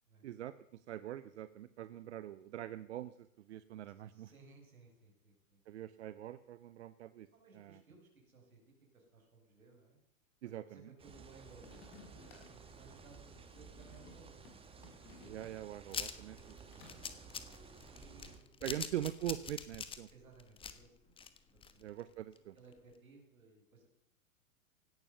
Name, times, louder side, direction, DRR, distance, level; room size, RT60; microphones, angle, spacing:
voice 1, 0.2-4.3 5.7-7.3 7.5-7.8 10.4-10.9 15.2-16.4 16.7-17.0 18.6-20.1 21.8-22.6, right 12 dB, 55° right, 15 dB, 0.8 m, -43 dB
voice 2, 4.1-5.6 7.3-10.0 10.4-11.8 12.1-14.4 16.7-17.0 17.9-18.9 20.1-21.2 21.5-21.8 22.5-23.9, right 3 dB, 75° right, 3 dB, 6.1 m, -61 dB
sound 1, 11.0-18.4, right 5 dB, 15° right, 2.1 m, -55 dB
sound 2, 11.6-15.9 16.2-17.1, left 3 dB, 40° left, 6.0 m, -59 dB
sound 3, 15.9-22.0 22.4-22.5 22.7-22.8, left 6 dB, 10° left, 1.2 m, -44 dB
17.0 x 12.0 x 6.8 m, 0.75 s
figure-of-eight pair, 105°, 42 cm